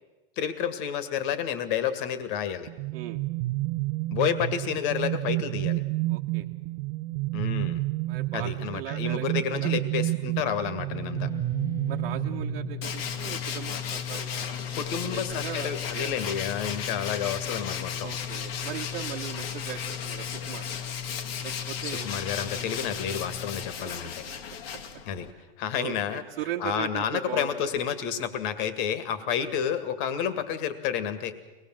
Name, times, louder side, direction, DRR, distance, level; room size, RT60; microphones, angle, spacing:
voice 1, 0.4-2.7 4.1-5.8 7.3-7.8 8.3-11.3 14.7-18.1 21.8-24.2 25.1-25.3 25.6-26.2 26.6-31.3, left 8 dB, 60° left, 12 dB, 2.1 m, -30 dB
sound 1, 2.7-13.1, right 20 dB, 45° right, 0.7 m, -30 dB
voice 2, 6.1-6.5 8.1-9.7 11.9-16.2 18.0-20.6 21.4-22.2 22.5-22.8 23.8-23.9 24.2-24.3 25.4-25.5 25.8-27.7 29.2-29.4, right 11 dB, 75° right, 0 dB, 1.3 m, -39 dB
sound 2, 10.9-23.7, left 10 dB, 10° left, 0.7 m, -38 dB
Tools, 12.8-25.3, left 7 dB, 75° left, 1.9 m, -36 dB
23.5 x 20.0 x 7.6 m, 1.2 s
supercardioid pair, 135°, 30 cm